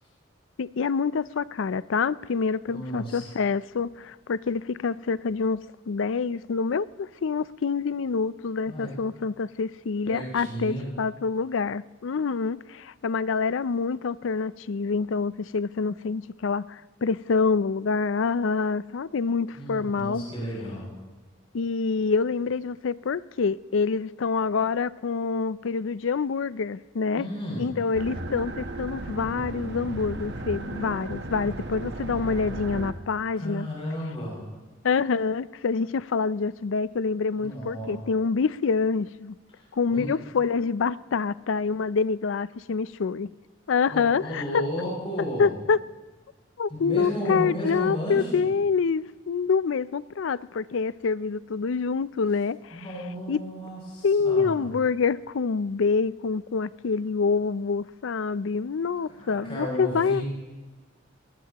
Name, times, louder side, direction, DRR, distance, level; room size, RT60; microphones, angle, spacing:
voice 1, 0.6-20.2 21.5-27.3 27.6-33.7 34.8-39.3 39.7-43.3 43.7-44.6 45.4-45.8 46.6-52.8 53.3-53.4 54.0-60.2, left 5 dB, 75° left, 0.4 m, -26 dB
voice 2, 2.7-3.3 8.7-8.9 10.0-10.9 19.5-20.9 27.2-27.7 33.3-34.4 37.4-37.9 39.6-40.2 43.9-45.5 46.7-48.4 52.7-54.6 59.1-60.2, equal, 30° left, 6.8 m, -33 dB
sound 1, 27.9-32.9, right 2 dB, 60° right, 1.2 m, -35 dB
23.0 x 19.0 x 3.0 m
head